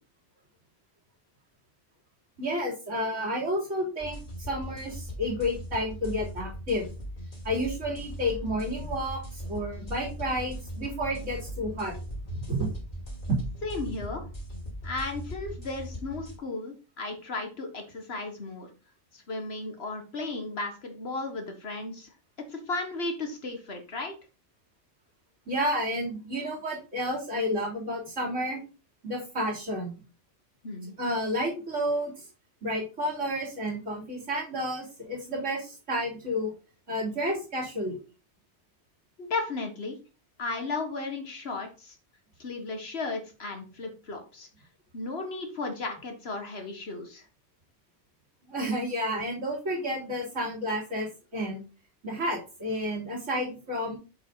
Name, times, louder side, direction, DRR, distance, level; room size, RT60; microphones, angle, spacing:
voice 1, 2.4-6.9 7.4-11.9 12.3-12.7 13.3-13.4 25.5-28.6 29.0-29.9 31.0-32.2 32.6-36.5 36.9-38.0 48.5-51.6 52.0-54.0, equal, 85° right, -4 dB, 3.6 m, -31 dB
sound 1, 4.0-16.4, equal, 40° left, 3.1 m, -39 dB
voice 2, 13.6-14.2 14.8-18.7 19.1-22.1 22.5-24.2 30.6-30.9 39.2-40.0 40.4-41.9 42.4-44.5 44.9-47.2, left 3 dB, 60° left, 4 dB, 1.7 m, -35 dB
7.3 x 5.0 x 3.9 m, 0.33 s
omnidirectional pair, 1.2 m